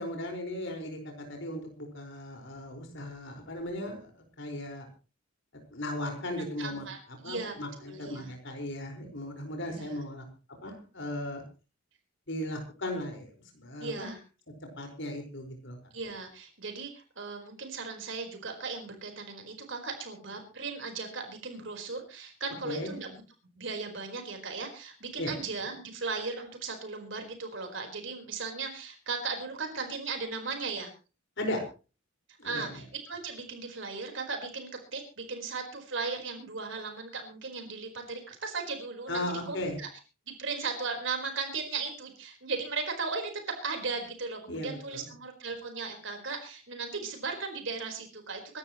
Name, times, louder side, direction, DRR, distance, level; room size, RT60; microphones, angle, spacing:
voice 1, 0.0-4.1 4.4-4.9 5.7-6.9 7.2-10.2 10.6-11.4 12.3-14.1 14.8-15.8 22.6-22.9 25.2-25.3 31.4-31.6 32.4-32.7 39.1-39.8 44.5-45.1, left 1 dB, 65° left, 2 dB, 5.1 m, -37 dB
voice 2, 6.6-7.0 7.2-8.3 9.7-9.9 13.8-14.2 15.9-23.2 23.5-30.9 32.4-39.9 40.3-43.3 43.6-48.6, right 4 dB, 65° right, 4 dB, 4.6 m, -37 dB
25.5 x 12.5 x 3.1 m, 0.34 s
head